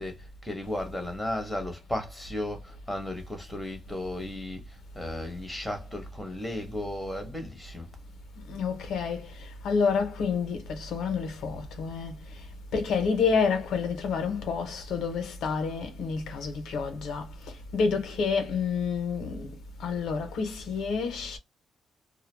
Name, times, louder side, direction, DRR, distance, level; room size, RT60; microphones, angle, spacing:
voice 1, 0.0-7.9, left 1 dB, 5° left, 0.9 m, -35 dB
voice 2, 8.5-12.4 12.7-19.5 19.8-21.4, left 5 dB, 85° left, 0.8 m, -29 dB
2.2 x 2.1 x 3.2 m
cardioid pair, 110°, 0 cm